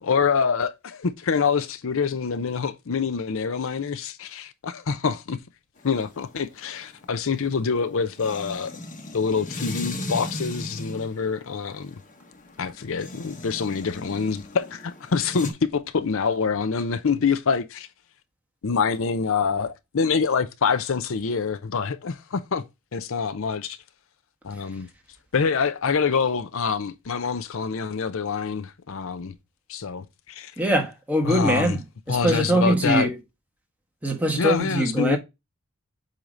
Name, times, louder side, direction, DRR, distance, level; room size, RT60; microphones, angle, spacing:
voice 1, 0.0-5.4 5.8-8.8 9.1-11.9 12.6-17.9 18.6-22.6 22.9-23.8 24.4-24.9 25.3-29.3 29.7-30.5 31.2-31.8 32.1-33.1 34.4-35.2, left 5 dB, 60° left, 0.6 m, -26 dB
sound 1, 5.8-15.5, left 1 dB, 35° left, 1.1 m, -38 dB
voice 2, 30.6-31.8 32.1-33.1 34.0-35.2, right 1 dB, 5° right, 1.3 m, -22 dB
7.8 x 2.9 x 5.0 m
head